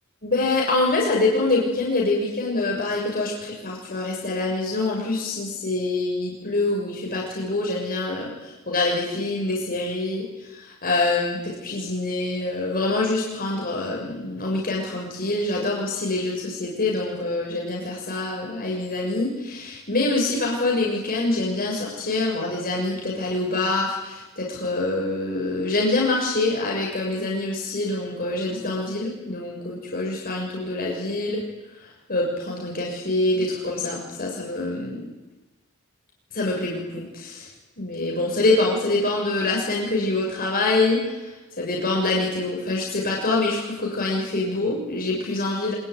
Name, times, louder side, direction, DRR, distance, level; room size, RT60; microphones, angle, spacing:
voice 1, 0.2-31.4 31.8-35.1 36.3-37.5 37.8-45.7, left 2 dB, 45° left, -2 dB, 6.8 m, -25 dB
26.0 x 20.5 x 9.7 m, 1.1 s
head